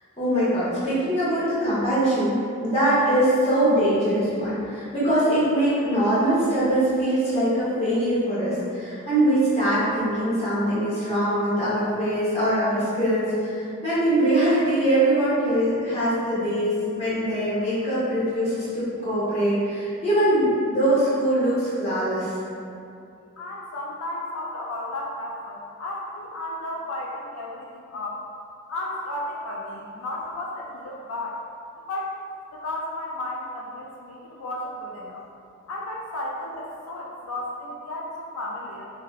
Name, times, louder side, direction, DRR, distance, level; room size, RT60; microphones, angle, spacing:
voice 1, 0.2-22.3, right 1 dB, 30° left, -11 dB, 0.9 m, -22 dB
voice 2, 23.4-28.2 28.7-31.4 31.9-32.1 32.5-35.2 35.7-38.9, left 1 dB, 85° left, -2 dB, 0.3 m, -33 dB
3.0 x 2.7 x 2.3 m, 2.5 s
head